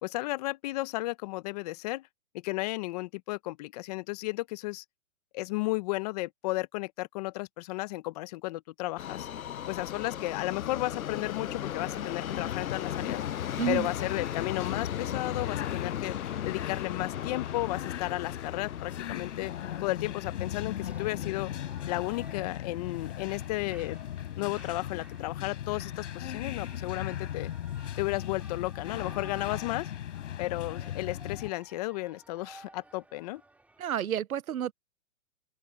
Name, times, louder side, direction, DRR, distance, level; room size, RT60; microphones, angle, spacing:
voice 1, 0.0-2.1 2.4-4.8 5.3-9.3 9.7-13.2 13.7-16.2 16.4-19.5 19.8-21.5 21.9-24.0 24.4-27.5 28.0-29.9 30.4-33.4, left 20 dB, 30° left, 0.9 m, -33 dB
Subway metro underground, 9.0-23.1 23.4-23.5 24.3-24.4 24.7-24.8 25.4-25.5, left 10 dB, 80° left, 0.9 m, -38 dB
sound 1, 12.2-31.5, left 11 dB, 55° left, 5.0 m, -38 dB
voice 2, 13.6-13.9 33.8-34.7, right 10 dB, 85° right, 0.9 m, -30 dB
Shout / Cheering, 20.1-34.0, right 2 dB, 5° right, 3.9 m, -55 dB
open air
hypercardioid pair, 150°, 42 cm